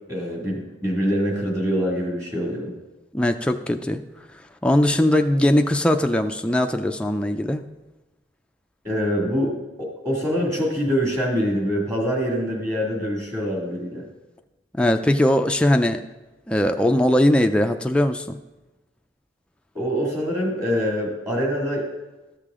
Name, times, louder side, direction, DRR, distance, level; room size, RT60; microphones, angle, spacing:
voice 1, 0.1-2.7 8.8-14.0 19.7-21.9, equal, 15° right, -2 dB, 2.1 m, -24 dB
voice 2, 3.1-4.0 4.6-7.6 14.8-16.0 16.5-18.4, left 1 dB, 5° left, 5 dB, 0.4 m, -20 dB
13.5 x 6.7 x 3.7 m, 1.1 s
head